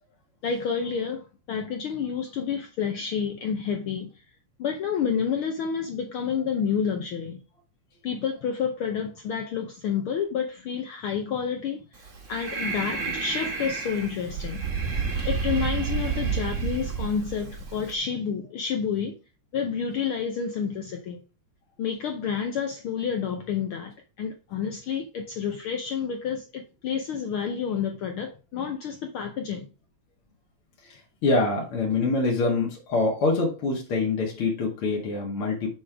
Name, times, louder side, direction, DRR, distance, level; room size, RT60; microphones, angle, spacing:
voice 1, 0.4-4.1 4.6-7.4 8.0-14.6 15.2-19.1 19.5-21.2 21.8-29.7, left 7 dB, 80° left, 1.2 m, -29 dB
Breathing, 12.0-17.9, right 5 dB, 40° right, 1.1 m, -30 dB
voice 2, 30.8-35.7, left 3 dB, 50° left, 2.4 m, -25 dB
7.4 x 4.3 x 4.8 m
omnidirectional pair, 3.3 m